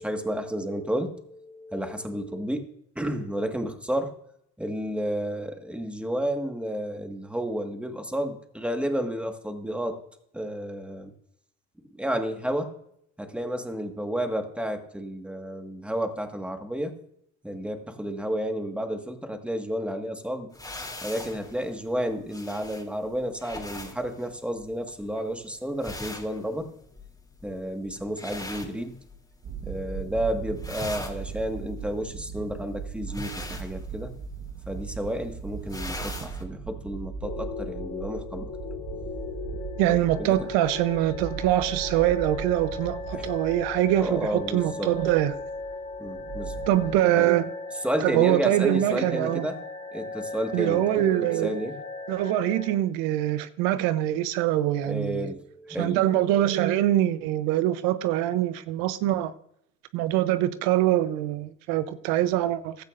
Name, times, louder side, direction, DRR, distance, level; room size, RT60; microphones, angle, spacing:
voice 1, 0.0-2.6 2.9-4.1 4.6-10.0 10.3-11.1 11.9-12.7 13.2-16.9 17.4-20.5 21.0-26.7 27.4-29.0 29.6-34.1 34.7-38.5 39.9-40.3 43.1-43.3 44.0-44.9 46.0-46.5 47.2-47.3 47.8-49.6 49.9-51.1 51.4-51.7 54.8-56.7, equal, 5° right, 1.6 m, -31 dB
sound 1, 20.5-29.5 29.8-30.2 30.5-36.4, left 2 dB, 10° left, 2.9 m, -41 dB
sound 2, 29.4-47.0, right 6 dB, 45° right, 1.2 m, -39 dB
sound 3, 37.2-52.7, left 3 dB, 55° left, 2.9 m, -37 dB
voice 2, 39.8-45.4 46.7-47.5 48.0-49.5 50.5-51.6 52.1-55.3 55.8-59.3 59.9-62.8, right 13 dB, 90° right, 0.7 m, -24 dB
15.5 x 12.0 x 2.5 m
cardioid pair, 100°, 32 cm